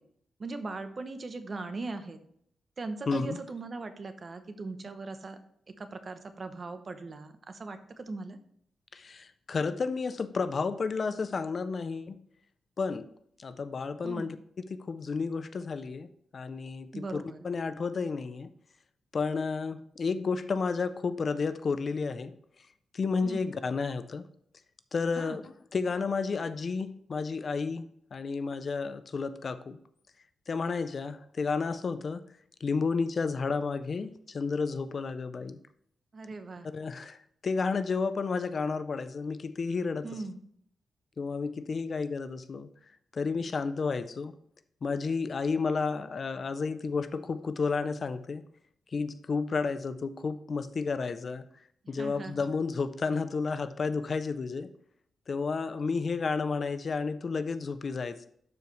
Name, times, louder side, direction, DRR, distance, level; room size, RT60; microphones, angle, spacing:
voice 1, 0.4-2.2 2.8-5.4 5.7-8.4 14.0-14.3 16.9-17.5 23.2-23.5 25.2-25.4 36.1-36.7 40.0-40.4 51.8-52.3, right 3 dB, 35° right, 9 dB, 0.8 m, -39 dB
voice 2, 3.1-3.4 8.9-12.2 12.8-13.1 13.4-14.4 14.7-16.1 16.3-18.5 19.1-22.3 22.9-24.3 24.9-25.4 25.7-29.8 30.5-32.2 32.6-35.6 36.7-37.2 37.4-40.1 41.2-42.7 43.1-44.3 44.8-48.4 48.9-51.4 51.9-54.7 55.3-58.3, left 4 dB, 40° left, 12 dB, 0.4 m, -31 dB
12.0 x 4.7 x 3.2 m, 0.67 s
wide cardioid pair, 135°, 0 cm